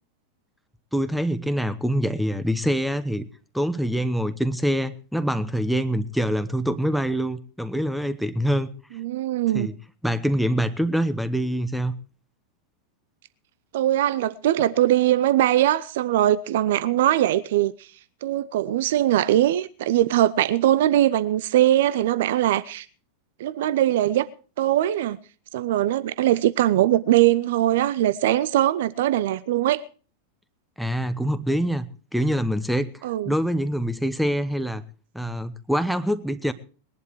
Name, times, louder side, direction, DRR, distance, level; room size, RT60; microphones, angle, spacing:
voice 1, 0.9-3.3 3.5-8.7 9.5-9.7 10.0-11.9 30.8-31.9 32.1-32.9 33.2-34.8 35.1-36.5, equal, ahead, 1.0 m, -25 dB
voice 2, 9.0-9.7 13.7-17.9 18.2-22.9 23.4-24.3 24.6-25.2 25.5-29.8 33.0-33.3, right 13 dB, 55° right, 0.6 m, -21 dB
20.5 x 11.0 x 4.7 m
figure-of-eight pair, 90°, 0 cm